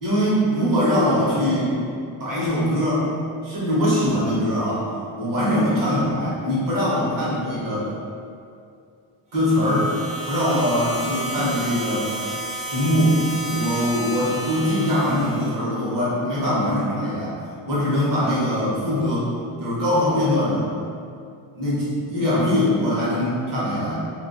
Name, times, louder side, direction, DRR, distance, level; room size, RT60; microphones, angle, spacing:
voice 1, 0.0-1.7 2.2-3.1 3.4-4.9 5.2-7.9 9.3-9.9 10.3-12.1 12.6-13.2 13.5-17.4 17.7-19.3 19.6-20.6 21.5-24.0, left 1 dB, 40° right, -9 dB, 0.9 m, -22 dB
sound 1, 9.3-15.5, right 1 dB, 15° right, 0.3 m, -32 dB
2.4 x 2.2 x 2.4 m, 2.4 s
cardioid pair, 140°, 49 cm